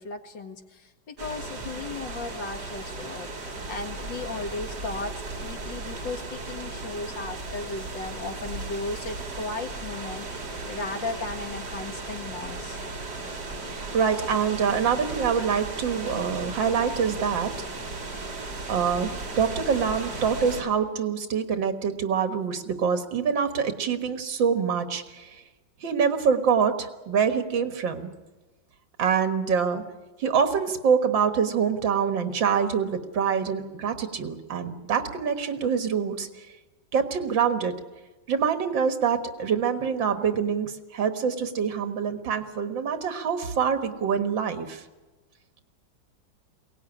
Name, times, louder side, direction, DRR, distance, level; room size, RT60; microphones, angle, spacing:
voice 1, 0.0-12.8, left 3 dB, 75° left, 5 dB, 2.5 m, -36 dB
sound 1, 1.2-20.6, right 3 dB, 60° right, 3.6 m, -36 dB
voice 2, 13.7-17.5 18.7-25.3 25.8-28.1 29.0-29.8 30.2-36.3 36.9-37.7 38.3-44.8, right 6 dB, 75° right, 8 dB, 2.3 m, -25 dB
22.5 x 18.5 x 9.8 m, 1.2 s
omnidirectional pair, 2.1 m